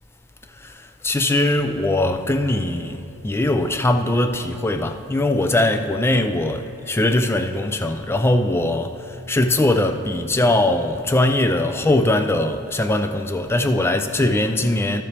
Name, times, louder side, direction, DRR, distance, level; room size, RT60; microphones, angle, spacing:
voice 1, 0.6-15.0, left 1 dB, 10° left, 0.3 m, -21 dB
13.0 x 7.2 x 3.3 m
head